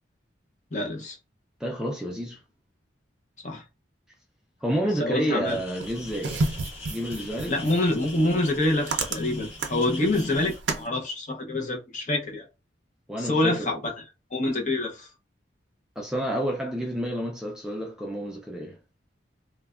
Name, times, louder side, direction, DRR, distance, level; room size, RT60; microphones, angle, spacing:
voice 1, 0.7-1.2 3.4-3.6 5.0-5.6 7.5-12.5 13.2-13.8 14.3-15.1, left 1 dB, 40° left, 0.6 m, -26 dB
voice 2, 1.6-2.4 4.6-6.4 6.9-7.6 13.1-13.8 16.0-18.8, equal, 5° right, 0.4 m, -29 dB
sound 1, 5.4-10.6, left 3 dB, 70° left, 1.5 m, -42 dB
sound 2, 5.8-10.9, right 3 dB, 65° right, 0.5 m, -32 dB
3.2 x 2.1 x 2.3 m
head